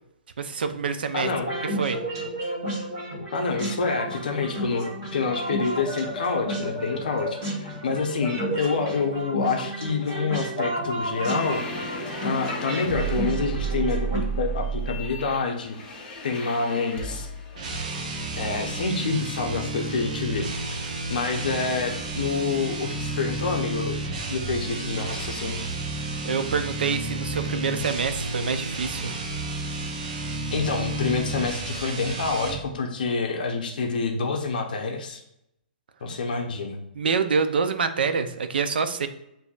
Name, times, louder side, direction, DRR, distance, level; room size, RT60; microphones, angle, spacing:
voice 1, 0.4-1.3 1.8-2.0 26.2-29.1 36.9-39.1, right 5 dB, 85° right, 9 dB, 0.5 m, -26 dB
voice 2, 1.1-1.5 3.3-11.6 12.2-17.3 18.4-24.0 24.3-25.6 30.5-35.2 36.0-36.8, left 4 dB, 60° left, 2 dB, 0.7 m, -27 dB
sound 1, 1.4-14.2, right 1 dB, 30° right, 1.4 m, -32 dB
sound 2, 11.1-17.6, right 4 dB, 15° left, 0.6 m, -32 dB
sound 3, 17.5-32.7, right 2 dB, 50° right, 0.8 m, -32 dB
6.8 x 2.7 x 2.4 m, 0.81 s
hypercardioid pair, 170°, 5 cm